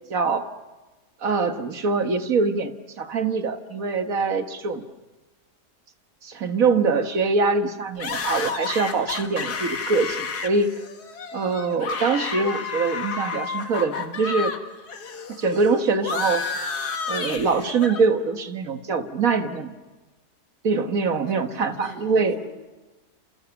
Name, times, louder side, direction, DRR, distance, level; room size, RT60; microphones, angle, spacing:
voice 1, 0.1-0.5 1.2-4.9 6.2-10.7 11.3-14.5 15.4-16.4 17.1-19.7 20.6-22.4, right 4 dB, 60° right, 8 dB, 1.9 m, -23 dB
sound 1, 8.0-14.6 14.9-18.0, left 5 dB, 75° left, 2.3 m, -31 dB
voice 2, 21.2-22.5, equal, 50° left, 2 dB, 6.3 m, -42 dB
28.5 x 28.0 x 7.1 m, 1.2 s
omnidirectional pair, 1.7 m